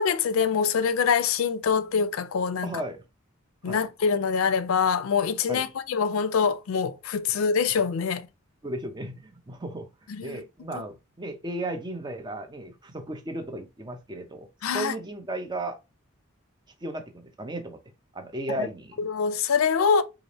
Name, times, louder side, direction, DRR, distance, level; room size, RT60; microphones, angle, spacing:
voice 1, 0.0-2.7 3.6-8.3 10.2-10.4 14.6-14.9 19.0-20.0, left 6 dB, 75° left, 0.4 m, -24 dB
voice 2, 2.6-3.0 3.6-3.8 5.5-5.7 8.6-9.9 10.2-15.8 16.8-17.8 18.1-19.0, right 1 dB, 20° right, 0.6 m, -35 dB
3.3 x 2.4 x 4.1 m
head